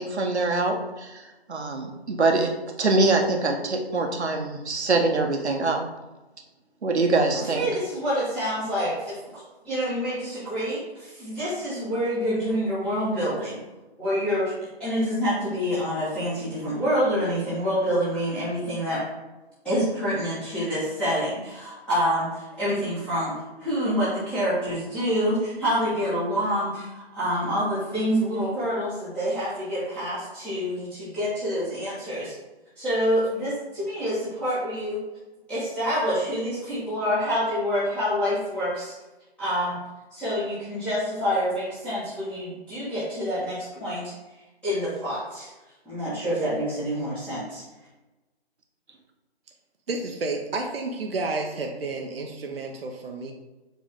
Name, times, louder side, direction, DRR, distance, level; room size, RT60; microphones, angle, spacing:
voice 1, 0.0-2.5 2.8-5.8 6.8-7.7, right 3 dB, 80° right, 3 dB, 1.3 m, -24 dB
voice 2, 7.5-13.6 14.0-14.5 14.8-19.0 19.6-23.3 23.6-32.3 32.8-35.0 35.5-38.9 39.4-39.8 40.1-44.1 44.6-45.5 45.8-47.6, equal, 5° left, -14 dB, 1.3 m, -27 dB
voice 3, 49.9-53.3, right 3 dB, 60° right, 2 dB, 0.9 m, -31 dB
7.3 x 3.4 x 3.7 m, 1.1 s
hypercardioid pair, 160°, 33 cm